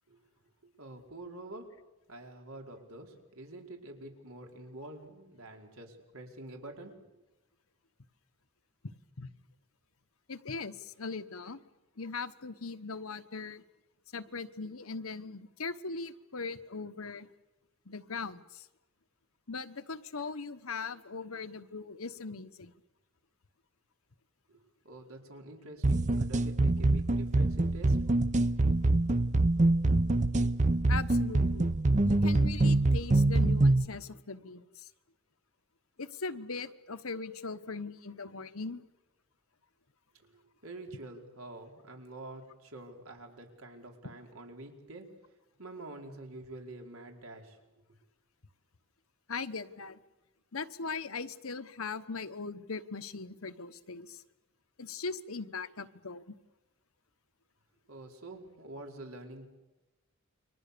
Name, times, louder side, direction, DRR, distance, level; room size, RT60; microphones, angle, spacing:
voice 1, 0.6-1.7 2.1-6.9 24.5-24.6 24.8-28.0 40.2-45.1 45.6-47.6 57.9-59.5, right 2 dB, 85° right, 2 dB, 4.7 m, -47 dB
voice 2, 8.8-9.3 10.3-11.6 12.0-13.6 14.1-17.3 17.9-18.6 19.5-22.7 30.9-31.8 32.0-34.9 36.0-38.8 49.3-50.0 50.5-54.2 54.8-56.3, left 4 dB, 80° left, 11 dB, 1.3 m, -40 dB
sound 1, 25.8-33.9, right 2 dB, 35° right, 0.8 m, -25 dB
29.5 x 24.0 x 7.0 m, 1.0 s
head